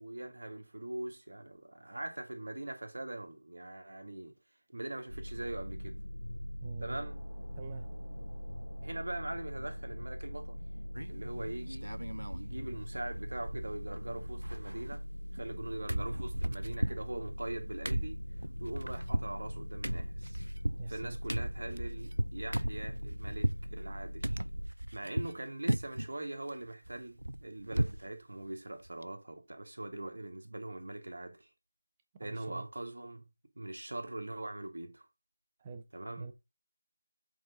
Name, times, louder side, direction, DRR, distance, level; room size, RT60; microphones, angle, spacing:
voice 1, 0.0-4.3 4.7-6.0 6.8-7.2 8.8-10.6 11.1-11.9 12.3-15.0 15.3-18.2 18.6-20.4 20.9-24.4 24.9-31.5 32.2-33.3 33.6-35.1 35.9-36.3, right 1 dB, 55° right, 1.8 m, -42 dB
sound 1, 5.1-24.7, equal, 75° left, 0.9 m, -42 dB
voice 2, 6.6-7.1 7.6-7.9 20.8-21.2 25.2-25.3 32.2-32.6 35.6-35.8 36.2-36.3, right 4 dB, 15° right, 0.7 m, -44 dB
sound 2, 7.0-13.4, right 1 dB, ahead, 1.8 m, -60 dB
sound 3, 10.9-11.3 11.7-12.5 12.8-12.9 13.1-14.0 14.2-15.6 15.9-23.7 24.2-25.4 25.7-26.1 26.5-28.1 28.4-28.5 28.8-29.0, right 1 dB, 80° right, 0.3 m, -36 dB
7.4 x 4.1 x 3.6 m
figure-of-eight pair, 165°, 0 cm